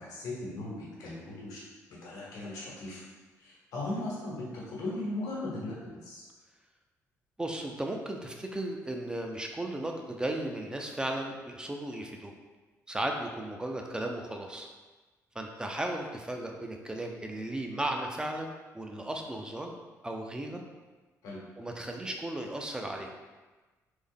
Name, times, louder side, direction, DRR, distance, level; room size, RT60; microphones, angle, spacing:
voice 1, 0.0-1.6 1.9-3.0 3.4-6.2 21.2-21.4, left 2 dB, 90° left, -5 dB, 1.1 m, -38 dB
voice 2, 7.4-12.3 12.9-14.7 15.4-19.7 20.0-20.6 21.6-23.1, right 1 dB, 15° right, 2 dB, 0.4 m, -35 dB
3.5 x 2.0 x 3.6 m, 1.3 s
cardioid pair, 90°, 6 cm